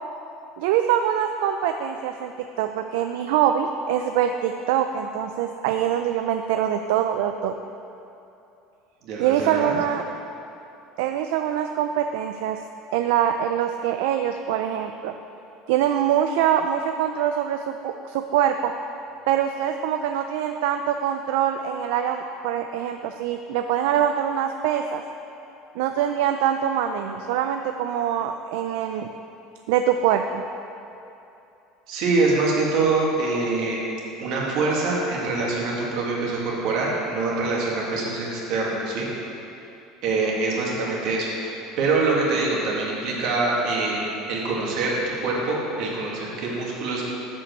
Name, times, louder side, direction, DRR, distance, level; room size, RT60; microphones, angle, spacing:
voice 1, 0.6-2.3 2.6-7.6 9.2-10.0 11.0-12.6 12.9-15.1 15.7-18.7 19.3-25.0 25.8-29.1 29.7-30.4, right 10 dB, 80° right, 6 dB, 0.3 m, -24 dB
voice 2, 9.0-9.7 31.9-33.8 34.2-39.1 40.0-44.0 44.3-47.0, right 3 dB, 60° right, -3 dB, 1.9 m, -24 dB
7.0 x 5.3 x 6.5 m, 2.8 s
supercardioid pair, 140°, 0 cm